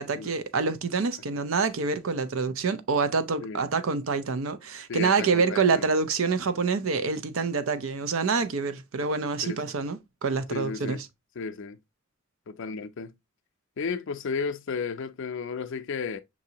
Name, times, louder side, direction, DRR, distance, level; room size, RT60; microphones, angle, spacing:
voice 1, 0.0-11.0, right 4 dB, 75° right, 0.5 m, -26 dB
voice 2, 4.9-5.9 9.4-9.6 10.5-11.0 11.4-11.8 12.5-13.1 13.8-16.2, left 5 dB, 65° left, 0.5 m, -33 dB
5.9 x 2.7 x 2.7 m
head